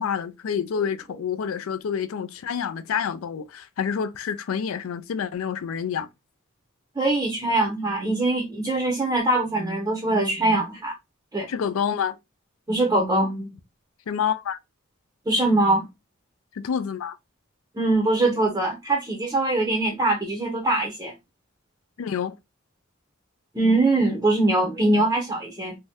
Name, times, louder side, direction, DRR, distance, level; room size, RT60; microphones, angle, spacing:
voice 1, 0.0-6.1 11.5-12.2 14.1-14.6 16.6-17.2 22.0-22.3, left 7 dB, 85° left, 0.4 m, -28 dB
voice 2, 7.0-10.9 11.3-11.5 12.7-13.5 15.3-15.8 17.8-21.1 23.5-25.8, right 2 dB, 15° right, 0.5 m, -22 dB
2.6 x 2.1 x 3.4 m
head